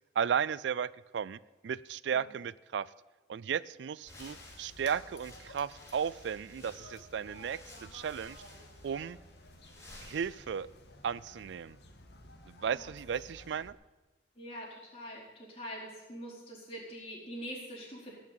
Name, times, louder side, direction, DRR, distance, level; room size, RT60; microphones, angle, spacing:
voice 1, 0.2-2.9 3.3-8.4 8.8-9.2 10.0-10.7 11.0-11.8 12.5-13.8, right 7 dB, 75° right, 20 dB, 0.4 m, -35 dB
voice 2, 2.1-2.4 12.7-12.9 14.3-18.1, equal, 30° left, -4 dB, 4.6 m, -44 dB
sound 1, 4.0-10.9, left 1 dB, 15° left, 3.1 m, -55 dB
sound 2, 4.1-13.7, left 1 dB, 60° left, 1.8 m, -54 dB
18.0 x 6.1 x 8.7 m, 1.1 s
head